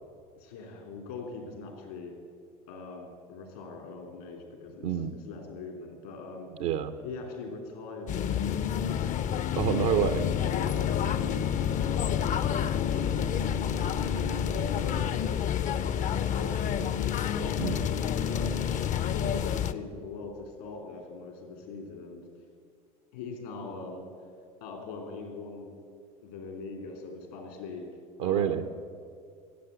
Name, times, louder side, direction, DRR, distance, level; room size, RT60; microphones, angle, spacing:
voice 1, 0.4-2.1 2.7-6.5 7.0-9.1 10.4-13.6 14.1-18.5 19.0-22.3 23.1-24.0 24.6-25.7 26.2-27.9 28.2-28.7, left 4 dB, 80° left, 3 dB, 3.0 m, -41 dB
voice 2, 4.8-5.1 6.6-6.9 9.6-10.3 17.6-17.8 28.2-28.6, right 9 dB, 75° right, 10 dB, 0.8 m, -27 dB
sound 1, 8.1-19.7, left 9 dB, 40° left, 0.6 m, -29 dB
13.0 x 7.8 x 8.2 m, 2.2 s
hypercardioid pair, 80°, 19 cm